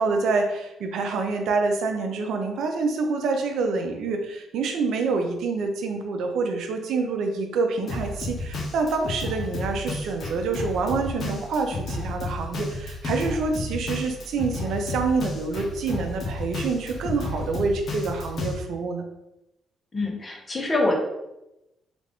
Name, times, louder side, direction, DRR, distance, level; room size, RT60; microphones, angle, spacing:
voice 1, 0.0-19.0, right 4 dB, 75° right, 4 dB, 0.5 m, -27 dB
Drum kit, 7.9-18.5, left 2 dB, 55° left, 0.8 m, -32 dB
voice 2, 19.9-21.0, left 2 dB, 25° left, 0 dB, 0.9 m, -25 dB
3.3 x 2.5 x 3.4 m, 0.90 s
cardioid pair, 90°, 0 cm